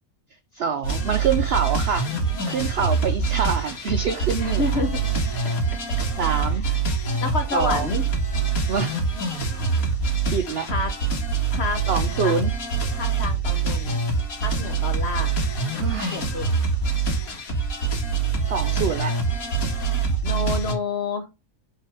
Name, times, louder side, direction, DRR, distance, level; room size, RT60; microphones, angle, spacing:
voice 1, 0.5-2.1 2.5-4.8 6.2-6.6 7.5-8.0 8.7-9.0 10.3-10.7 11.9-12.5 15.8-16.3 18.5-19.1, right 6 dB, 70° right, 0.6 m, -26 dB
sound 1, 0.8-20.7, right 4 dB, 60° left, 2.0 m, -25 dB
voice 2, 4.4-5.0 7.2-8.0 10.6-10.9 11.5-11.8 12.2-12.4 12.9-14.0 14.4-15.3 15.7-16.5 20.2-21.3, left 3 dB, 45° left, 1.2 m, -29 dB
5.6 x 3.8 x 4.9 m
omnidirectional pair, 1.7 m